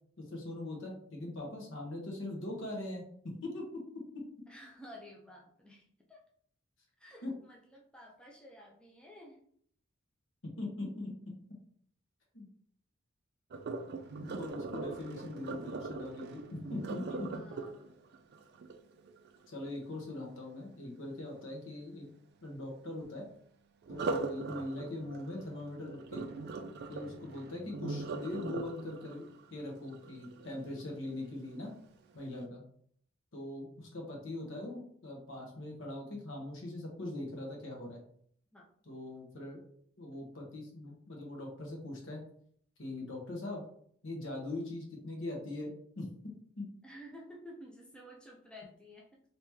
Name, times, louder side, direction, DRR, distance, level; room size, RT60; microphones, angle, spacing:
voice 1, 0.2-3.6 3.9-4.2 7.2-7.3 10.6-11.1 12.3-12.5 14.2-17.3 19.5-22.1 22.4-23.2 23.9-26.3 26.9-29.2 29.5-31.7 32.1-32.6 33.3-38.0 38.9-39.6 40.0-42.2 42.8-43.6 44.0-45.7 46.0-46.1 46.6-46.7, left 2 dB, 65° left, 0 dB, 1.0 m, -41 dB
voice 2, 4.5-6.2 7.0-9.4 17.3-18.0 38.5-38.7 46.8-49.2, equal, 5° left, -2 dB, 0.5 m, -52 dB
Sink (filling or washing), 13.5-19.5 23.8-30.9 31.4-31.7 32.2-32.3, right 3 dB, 55° right, 0.4 m, -41 dB
3.0 x 2.9 x 3.4 m, 0.63 s
head